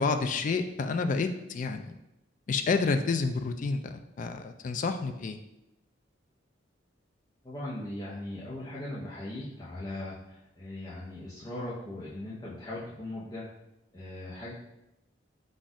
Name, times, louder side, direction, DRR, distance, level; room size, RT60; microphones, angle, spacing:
voice 1, 0.0-1.9 2.5-3.9 4.2-5.4, left 4 dB, 40° left, 8 dB, 0.3 m, -29 dB
voice 2, 7.4-13.5 13.9-14.5, left 1 dB, 20° left, -8 dB, 0.8 m, -39 dB
4.2 x 2.5 x 4.7 m, 0.89 s
head